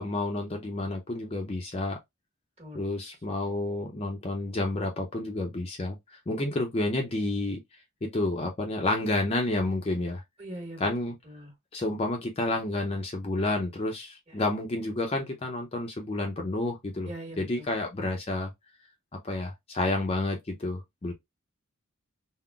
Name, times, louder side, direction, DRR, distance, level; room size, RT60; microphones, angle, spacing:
voice 1, 0.0-2.0 2.7-7.6 8.0-10.2 10.8-11.2 11.7-18.5 19.2-21.1, left 2 dB, 30° left, 0.4 m, -30 dB
voice 2, 10.4-10.8 11.3-11.5 17.1-17.5, right 1 dB, 30° right, 1.3 m, -40 dB
3.6 x 2.1 x 2.2 m
head